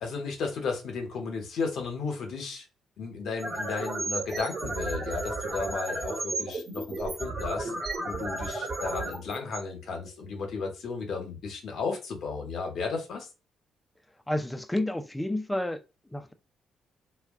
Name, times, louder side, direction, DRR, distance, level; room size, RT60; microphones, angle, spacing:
voice 1, 0.0-2.6 3.0-7.7 8.0-13.3, left 4 dB, 70° left, 0.8 m, -34 dB
sound 1, 3.2-10.3, right 2 dB, 45° right, 1.0 m, -34 dB
voice 2, 14.3-15.8 16.1-16.3, left 1 dB, 10° left, 0.4 m, -30 dB
2.3 x 2.2 x 3.4 m
cardioid pair, 90°, 0 cm